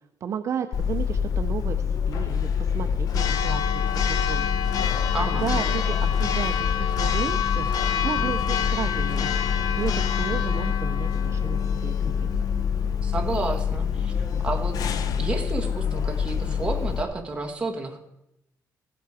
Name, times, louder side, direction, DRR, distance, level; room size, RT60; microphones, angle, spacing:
voice 1, 0.2-4.5 4.9-5.1 5.4-7.7 8.0-12.3, right 8 dB, 50° right, 8 dB, 0.5 m, -33 dB
Church bell, 0.7-17.0, left 7 dB, 70° left, 0.7 m, -25 dB
voice 2, 5.1-5.4 13.0-14.8 15.2-18.0, right 3 dB, 15° right, 2 dB, 1.4 m, -31 dB
15.5 x 7.9 x 4.8 m, 0.87 s
cardioid pair, 160°, 7 cm